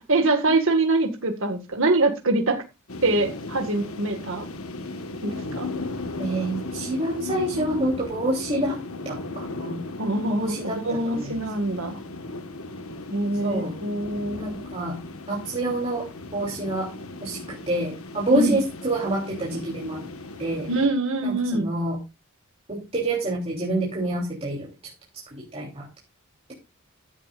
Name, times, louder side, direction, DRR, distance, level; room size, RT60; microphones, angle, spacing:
voice 1, 0.1-2.6 3.0-4.5 5.2-5.7 10.0-12.0 13.1-14.5 18.3-18.6 20.7-21.7, right 2 dB, 65° right, 1.9 m, -24 dB
sound 1, 2.9-20.9, left 3 dB, 75° left, 1.5 m, -36 dB
voice 2, 6.2-8.8 9.0-9.8 10.3-11.3 13.4-13.7 14.4-15.0 15.3-16.1 16.3-16.9 17.2-20.0 20.4-20.7 21.2-22.0 22.7-24.7 25.1-25.9, right 1 dB, 30° right, 3.4 m, -27 dB
15.0 x 11.5 x 2.5 m
head